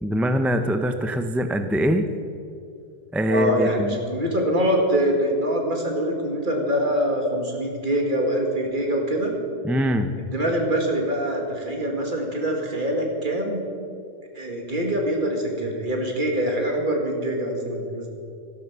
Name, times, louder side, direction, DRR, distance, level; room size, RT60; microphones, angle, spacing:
voice 1, 0.0-2.1 3.1-4.0 9.6-10.1, equal, ahead, 8 dB, 0.4 m, -23 dB
voice 2, 3.3-9.3 10.2-13.6 14.3-18.1, equal, 50° right, 1 dB, 2.2 m, -24 dB
12.5 x 12.0 x 6.1 m, 2.6 s
omnidirectional pair, 1.1 m